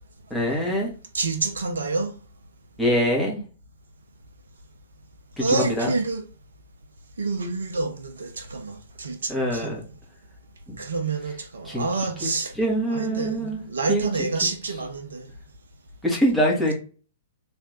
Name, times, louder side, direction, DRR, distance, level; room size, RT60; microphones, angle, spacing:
voice 1, 0.3-0.9 2.8-3.4 5.4-5.5 5.8-5.9 9.3-9.8 11.7-11.9 12.2-12.3 12.6-13.6 13.9-14.1 16.0-16.7, equal, ahead, 1.9 m, -23 dB
voice 2, 1.1-2.1 5.4-6.2 7.2-9.8 10.8-12.5 12.9-15.3, right 3 dB, 70° right, 0.9 m, -28 dB
3.5 x 3.4 x 4.1 m
figure-of-eight pair, 110°, 0 cm